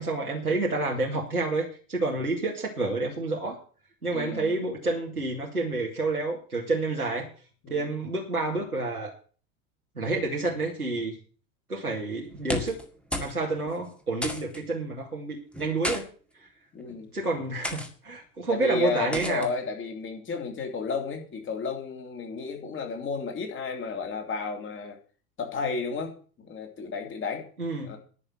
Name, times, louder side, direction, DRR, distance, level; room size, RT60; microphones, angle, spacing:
voice 1, 0.0-3.6 4.0-7.3 7.7-9.1 10.0-11.2 11.7-12.8 13.2-16.1 17.1-19.5 27.6-28.0, right 2 dB, 85° right, -2 dB, 2.4 m, -29 dB
voice 2, 4.1-4.6 7.6-7.9 16.7-17.1 18.5-25.0 25.4-27.5 27.8-28.0, left 4 dB, 25° left, 4 dB, 3.2 m, -32 dB
sound 1, 12.3-12.9 13.1-13.4 13.7-13.8 14.2-14.6 15.5-16.0 16.8-17.0 17.6-17.9 19.1-19.5, left 1 dB, 5° left, 1.9 m, -32 dB
11.0 x 6.7 x 9.1 m, 0.41 s
figure-of-eight pair, 80°, 43 cm